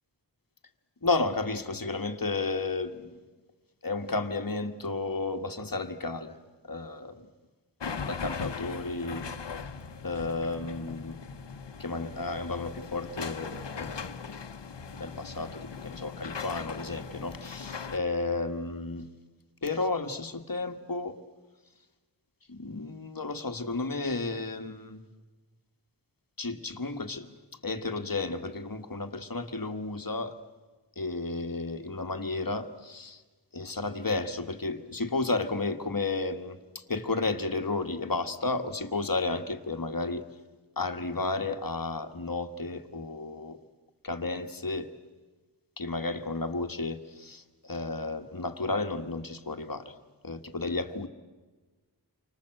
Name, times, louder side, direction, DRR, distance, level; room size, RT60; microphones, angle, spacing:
voice 1, 1.0-3.1 3.8-6.4 6.7-7.3 8.0-9.3 10.0-11.3 11.8-14.3 15.0-19.1 19.6-21.2 22.5-25.0 26.4-27.3 27.6-30.4 31.0-33.2 33.5-40.2 40.8-43.6 44.0-44.9 45.8-49.9 50.2-51.1, left 3 dB, 50° left, 1.7 m, -32 dB
sound 1, 7.8-18.0, left 5 dB, 75° left, 1.1 m, -39 dB
30.0 x 24.5 x 7.8 m
wide cardioid pair, 65°, 42 cm